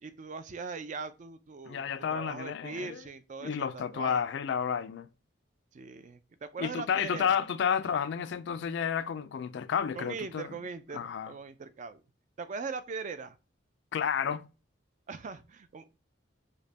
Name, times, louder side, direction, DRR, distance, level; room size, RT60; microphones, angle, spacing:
voice 1, 0.0-4.3 5.7-7.3 9.9-12.0 12.4-13.4 15.1-16.0, right 4 dB, 40° right, 0.4 m, -41 dB
voice 2, 1.7-2.9 3.4-5.1 6.6-10.5 10.9-11.3 13.9-14.5, left 7 dB, 65° left, 0.3 m, -31 dB
5.0 x 2.2 x 2.6 m
head